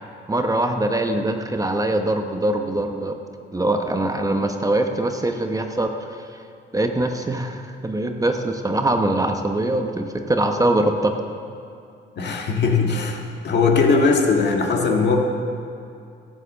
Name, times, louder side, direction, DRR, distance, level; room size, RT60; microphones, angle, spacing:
voice 1, 0.3-3.2 3.5-6.2 6.7-11.1, right 1 dB, 15° right, 5 dB, 0.9 m, -23 dB
voice 2, 12.2-15.2, left 4 dB, 60° left, 2 dB, 1.7 m, -19 dB
13.0 x 7.7 x 7.3 m, 2.5 s
cardioid pair, 90°, 20 cm